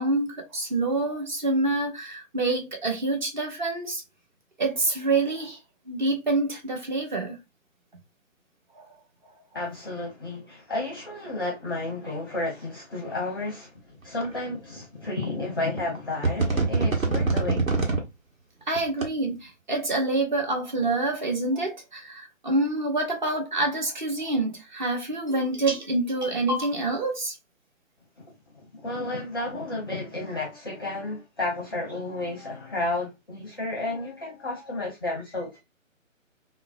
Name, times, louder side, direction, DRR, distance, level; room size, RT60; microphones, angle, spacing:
voice 1, 0.0-4.0 4.6-5.6 5.9-7.4 8.7-8.9 18.7-27.3, right 2 dB, 35° right, 0.8 m, -27 dB
voice 2, 9.5-13.7 14.0-17.6 28.2-28.3 28.7-35.6, left 2 dB, 20° left, 0.6 m, -32 dB
sound 1, 14.2-14.3 15.2-15.3 15.8-16.0 16.2-18.0 18.8-19.0, right 3 dB, 75° right, 1.2 m, -23 dB
3.6 x 2.1 x 2.5 m
figure-of-eight pair, 145°, 40 cm